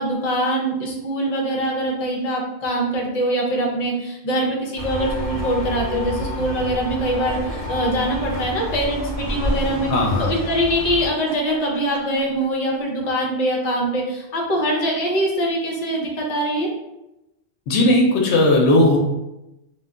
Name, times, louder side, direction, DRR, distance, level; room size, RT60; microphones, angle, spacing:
voice 1, 0.0-9.9 10.2-16.7, right 1 dB, 45° left, -1 dB, 0.6 m, -23 dB
sound 1, 4.8-11.1, left 1 dB, 45° right, 0.9 m, -29 dB
sound 2, 7.0-7.7 9.3-10.2 11.1-12.4, right 2 dB, 75° right, 0.8 m, -36 dB
voice 2, 9.9-10.3 17.7-19.0, left 1 dB, 80° left, 0 dB, 0.8 m, -16 dB
2.2 x 2.2 x 3.6 m, 0.93 s
omnidirectional pair, 1.1 m